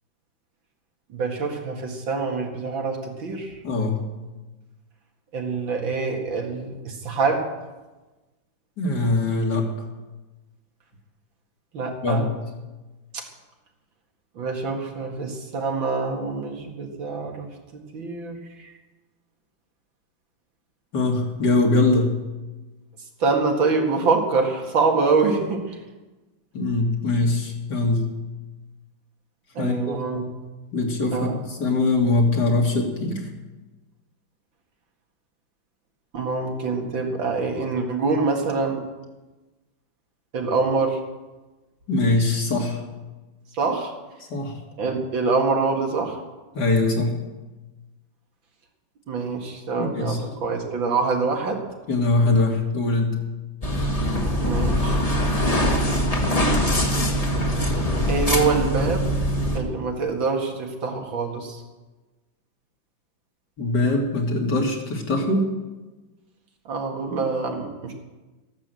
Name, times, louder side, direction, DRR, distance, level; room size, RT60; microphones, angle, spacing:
voice 1, 1.1-3.6 5.3-7.5 11.7-12.3 13.1-13.3 14.4-18.7 23.2-25.8 29.5-30.2 31.1-31.4 36.1-38.8 40.3-41.0 43.5-43.9 44.8-46.2 49.1-51.7 54.4-55.0 58.1-59.2 59.5-61.6 66.7-67.9, right 4 dB, 75° right, 2 dB, 2.8 m, -25 dB
voice 2, 3.6-4.0 8.8-9.7 12.0-12.2 20.9-22.2 26.5-28.1 29.6-30.0 30.7-33.3 41.9-42.8 44.3-44.6 46.5-47.2 49.8-50.2 51.9-53.2 63.6-65.5, left 2 dB, 55° left, 1 dB, 3.0 m, -22 dB
sound 1, 53.6-59.6, equal, 20° left, 1.7 m, -22 dB
14.5 x 11.5 x 7.7 m, 1.2 s
omnidirectional pair, 2.1 m